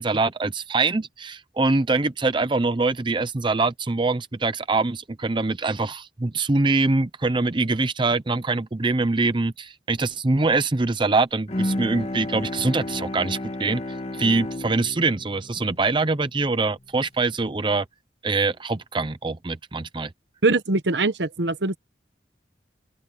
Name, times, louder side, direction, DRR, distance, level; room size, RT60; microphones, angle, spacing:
voice 1, 0.0-17.9 18.2-20.1, right 3 dB, 30° right, 0.6 m, -24 dB
Bowed string instrument, 11.5-16.9, left 1 dB, 35° left, 1.8 m, -32 dB
voice 2, 20.4-21.8, right 3 dB, 80° right, 1.1 m, -22 dB
open air
head